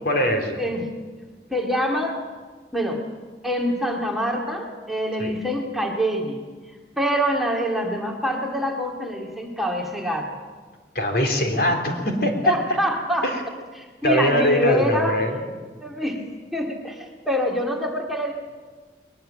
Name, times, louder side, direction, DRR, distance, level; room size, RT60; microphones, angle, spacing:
voice 1, 0.1-0.6 5.2-5.3 11.0-12.5 13.2-13.4 14.0-15.4, equal, 60° left, 3 dB, 3.7 m, -22 dB
voice 2, 1.5-2.2 2.7-3.0 3.4-6.4 7.0-10.4 12.4-13.3 13.8-15.2 15.8-16.2 16.5-18.3, equal, ahead, 0 dB, 2.1 m, -25 dB
21.0 x 21.0 x 7.5 m, 1.4 s
head